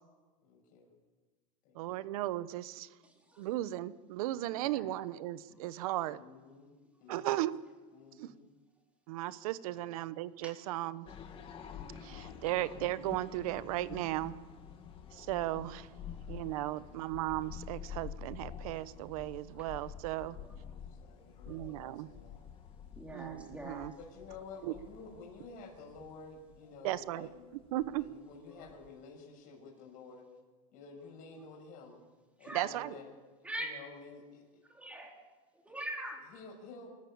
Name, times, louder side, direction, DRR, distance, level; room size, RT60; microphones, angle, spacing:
voice 1, 0.4-0.9 1.6-2.0 6.1-6.7 7.0-7.5 7.9-8.4 9.7-9.9 16.0-16.3 16.6-17.0 20.2-20.7 21.0-22.4 24.0-27.5 28.0-30.3 30.7-32.0 32.4-33.1 33.6-34.4 36.3-36.9, left 4 dB, 45° left, 1 dB, 6.3 m, -51 dB
voice 2, 1.7-2.9 3.4-6.2 7.1-7.5 8.2-8.3 9.1-11.1 12.0-14.3 15.1-15.9 16.3-20.4 21.5-22.1 23.1-23.9 24.6-24.7 26.8-27.3 27.7-28.1 32.5-33.0, right 15 dB, 70° right, 16 dB, 1.0 m, -36 dB
voice 3, 4.5-4.9 21.5-21.7 23.0-23.9 32.4-32.7 33.4-33.7 34.7-35.2 35.7-36.2, right 1 dB, 5° right, 1 dB, 3.9 m, -42 dB
sound 1, 11.1-29.0, left 7 dB, 30° left, 2.3 m, -49 dB
26.0 x 14.0 x 8.7 m, 1.3 s
supercardioid pair, 145°, 19 cm